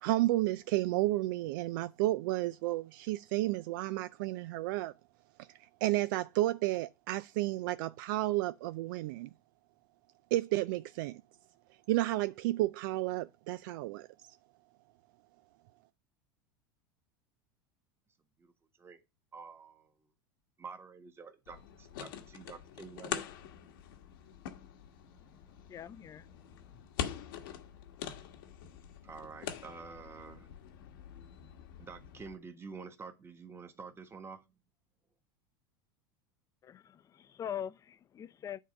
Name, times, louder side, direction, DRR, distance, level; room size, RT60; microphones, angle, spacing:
voice 1, 0.0-4.9 5.4-9.3 10.3-11.2 11.9-14.1, right 17 dB, 70° right, 0.4 m, -32 dB
voice 2, 19.3-19.9 20.6-23.2 29.0-30.5 31.8-34.6, right 5 dB, 20° right, 1.4 m, -48 dB
sound 1, 21.5-32.4, left 9 dB, 75° left, 1.3 m, -44 dB
voice 3, 25.2-26.8 36.6-38.6, left 9 dB, 30° left, 0.6 m, -44 dB
9.4 x 3.7 x 5.2 m
hypercardioid pair, 105°, 11 cm